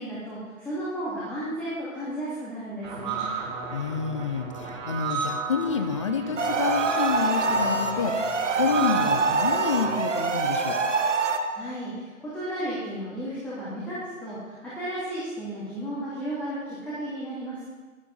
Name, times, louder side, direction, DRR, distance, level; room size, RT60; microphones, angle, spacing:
voice 1, 0.0-3.2 11.5-17.6, right 1 dB, 5° left, -11 dB, 2.4 m, -34 dB
sound 1, 2.8-10.0, right 6 dB, 35° right, 1.9 m, -34 dB
voice 2, 3.7-8.2 8.6-10.9, left 6 dB, 25° left, 8 dB, 0.5 m, -28 dB
sound 2, 6.4-11.4, right 3 dB, 60° right, 1.3 m, -25 dB
12.0 x 11.0 x 3.9 m, 1.3 s
figure-of-eight pair, 130°, 41 cm